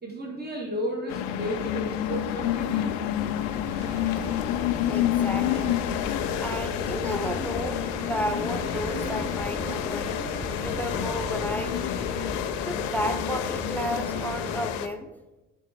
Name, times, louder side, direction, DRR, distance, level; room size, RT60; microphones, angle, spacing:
voice 1, 0.0-3.0, equal, 25° right, -2 dB, 2.2 m, -33 dB
sound 1, 1.1-14.9, left 11 dB, 85° left, 0.5 m, -29 dB
sound 2, 1.4-14.7, equal, 70° right, 2.1 m, -38 dB
sound 3, 3.6-12.4, right 2 dB, 85° right, 1.0 m, -42 dB
voice 2, 4.8-5.8 6.4-10.1 10.6-11.8 12.6-15.1, equal, 5° left, 8 dB, 0.5 m, -33 dB
8.2 x 3.6 x 4.5 m, 1.1 s
hypercardioid pair, 55°, 37 cm